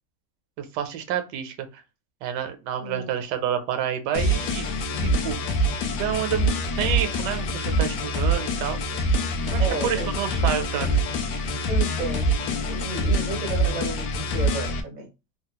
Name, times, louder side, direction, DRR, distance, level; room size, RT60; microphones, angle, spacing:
voice 1, 0.6-1.8 2.2-4.7 5.0-5.4 5.9-8.8 9.5-11.0, right 9 dB, 80° right, 7 dB, 1.2 m, -29 dB
voice 2, 2.8-3.2 9.6-10.1 11.7-12.3 12.7-15.1, right 2 dB, 40° right, 1 dB, 0.6 m, -32 dB
sound 1, 4.1-14.8, right 1 dB, 80° left, 1.1 m, -25 dB
3.3 x 2.3 x 2.9 m, 0.27 s
omnidirectional pair, 1.8 m